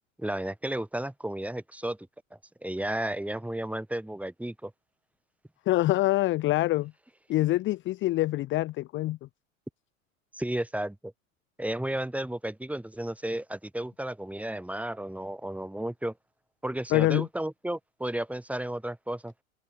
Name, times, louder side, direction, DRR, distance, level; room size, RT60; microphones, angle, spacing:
voice 1, 0.2-2.0 2.3-4.7 10.3-11.1 11.6-16.1 16.6-19.4, right 1 dB, 5° right, 7.7 m, -33 dB
voice 2, 5.7-6.9 7.3-9.2 16.9-17.3, left 17 dB, 30° left, 0.7 m, -25 dB
figure-of-eight pair, 80°, 39 cm